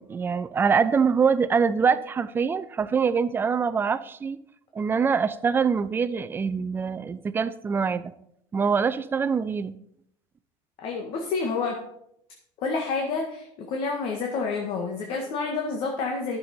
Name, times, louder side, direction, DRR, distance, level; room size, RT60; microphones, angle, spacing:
voice 1, 0.0-4.4 4.7-8.1 8.5-9.7, right 6 dB, 20° right, 12 dB, 0.5 m, -24 dB
voice 2, 10.8-11.8 12.6-16.4, left 4 dB, 60° left, 2 dB, 1.6 m, -29 dB
10.5 x 6.9 x 5.6 m, 0.74 s
cardioid pair, 130°, 10 cm